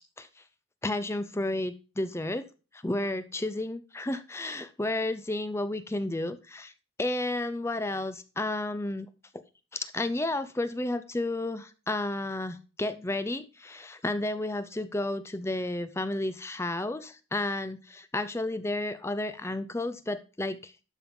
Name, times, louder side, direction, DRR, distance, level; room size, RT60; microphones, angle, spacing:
voice 1, 0.8-2.4 2.7-6.7 7.0-9.1 9.7-20.7, left 2 dB, 15° left, 12 dB, 0.5 m, -32 dB
11.5 x 5.5 x 3.7 m, 0.34 s
head